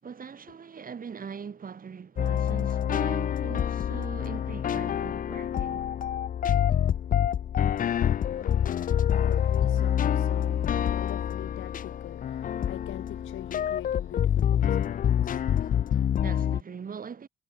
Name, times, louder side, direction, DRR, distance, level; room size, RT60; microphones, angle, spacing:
voice 1, 0.0-5.9 16.2-17.3, right 6 dB, 45° right, 5.0 m, -41 dB
sound 1, 2.2-16.6, left 9 dB, 45° left, 0.5 m, -26 dB
voice 2, 8.4-16.1, left 14 dB, 90° left, 6.7 m, -44 dB
cardioid pair, 85°, 20 cm